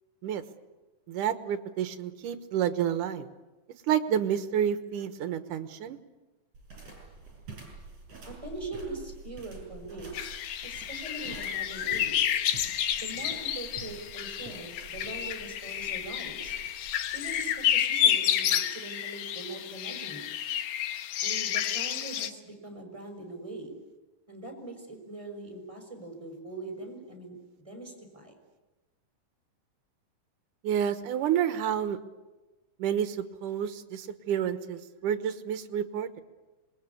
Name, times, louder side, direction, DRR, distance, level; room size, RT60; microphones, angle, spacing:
voice 1, 1.1-3.3 3.9-6.0 30.6-32.0 32.8-36.2, right 9 dB, 65° right, 10 dB, 2.5 m, -29 dB
sound 1, 6.5-17.8, right 4 dB, 40° right, 7.1 m, -48 dB
voice 2, 8.3-10.4 10.6-12.3 13.0-16.6 17.1-20.2 21.2-23.7 24.3-27.4 27.7-28.4, right 2 dB, 10° right, 3 dB, 5.6 m, -42 dB
sound 2, 10.1-22.3, left 10 dB, 75° left, 2.9 m, -30 dB
26.5 x 21.5 x 8.4 m, 1.1 s
omnidirectional pair, 4.4 m